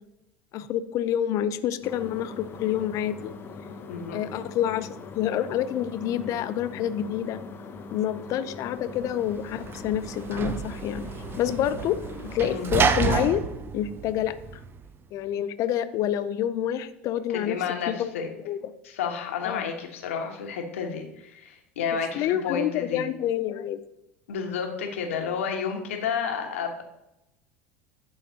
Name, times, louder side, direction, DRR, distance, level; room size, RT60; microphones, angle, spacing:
voice 1, 0.5-3.3 4.1-4.9 5.2-7.4 7.9-11.1 11.4-13.4 13.7-14.4 15.1-17.6 17.9-18.1 18.4-18.7 19.4-19.6 22.1-23.8, left 11 dB, 50° left, 13 dB, 0.5 m, -27 dB
sound 1, 1.8-12.7, left 4 dB, 30° left, 0.8 m, -42 dB
voice 2, 3.9-4.2 12.5-12.7 17.3-18.3 18.8-23.1 24.3-26.8, left 6 dB, 80° left, 3 dB, 1.2 m, -31 dB
Sliding door / Slam, 9.0-14.9, right 6 dB, 35° right, 0.6 m, -30 dB
11.5 x 3.9 x 2.8 m, 0.85 s
hypercardioid pair, 85°, 7 cm